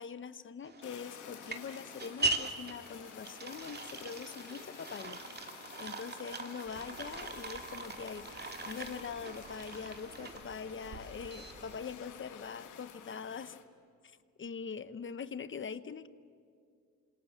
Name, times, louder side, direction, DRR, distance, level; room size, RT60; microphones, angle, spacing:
voice 1, 0.0-5.2 5.8-13.6 14.4-16.1, left 6 dB, 40° left, 13 dB, 1.2 m, -43 dB
sound 1, 0.6-11.9, right 2 dB, 35° right, 2.4 m, -41 dB
Fire, 0.8-13.6, left 9 dB, 85° left, 2.2 m, -51 dB
sound 2, 6.6-11.8, right 4 dB, 55° right, 4.7 m, -56 dB
28.5 x 27.0 x 7.5 m, 2.4 s
cardioid pair, 90°, 30 cm